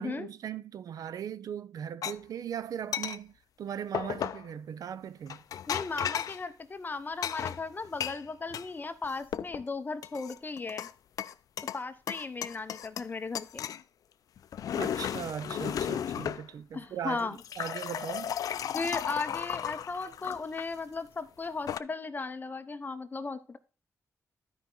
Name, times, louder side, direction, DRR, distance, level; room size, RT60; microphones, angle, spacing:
voice 1, 0.0-5.4 14.7-18.4, right 9 dB, 85° right, 0.5 m, -39 dB
sound 1, 2.0-2.1 2.9-3.2 3.9-4.5 5.3-6.4 7.2-8.7 9.0-9.6 10.0-10.9 11.2-11.8 12.1-13.1 13.3-13.8 14.4-16.4 17.2-20.7 21.4-21.8, left 9 dB, 85° left, 0.4 m, -34 dB
voice 2, 5.7-10.9 11.7-13.6 16.7-17.4 18.7-23.6, left 4 dB, 30° left, 0.8 m, -36 dB
12.5 x 5.1 x 3.9 m
wide cardioid pair, 125°, 6 cm